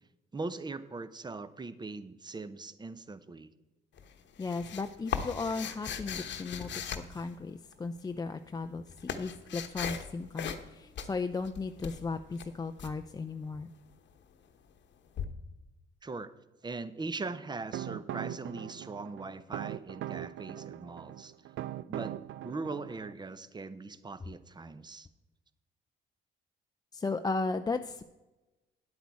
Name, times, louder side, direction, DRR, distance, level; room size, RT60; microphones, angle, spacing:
voice 1, 0.3-3.5 16.0-16.3 16.6-21.3 21.9-22.1 22.4-25.1, right 3 dB, 20° right, 14 dB, 0.7 m, -40 dB
sound 1, 4.0-7.8 8.5-10.1 10.4-10.7 10.9-12.9 15.2-15.3, left 7 dB, 65° left, 1.0 m, -38 dB
voice 2, 4.4-6.7 7.1-13.7 26.9-28.0, left 4 dB, 20° left, 7 dB, 0.4 m, -35 dB
sound 2, 17.3-23.1, right 12 dB, 75° right, 0.4 m, -41 dB
9.7 x 8.2 x 4.7 m, 1.1 s
cardioid pair, 90°, 20 cm